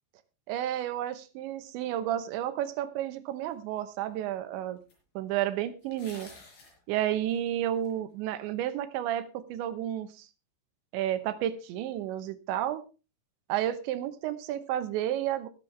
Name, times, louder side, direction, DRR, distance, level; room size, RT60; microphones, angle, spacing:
voice 1, 0.5-4.8 5.2-6.3 6.9-10.3 10.9-12.8 13.5-15.5, right 11 dB, 80° right, 11 dB, 3.2 m, -31 dB
sound 1, 3.8-3.9 4.9-5.0 5.8-6.8 7.3-7.9, left 3 dB, 60° left, 6.7 m, -50 dB
22.0 x 7.4 x 3.3 m, 0.31 s
omnidirectional pair, 5.2 m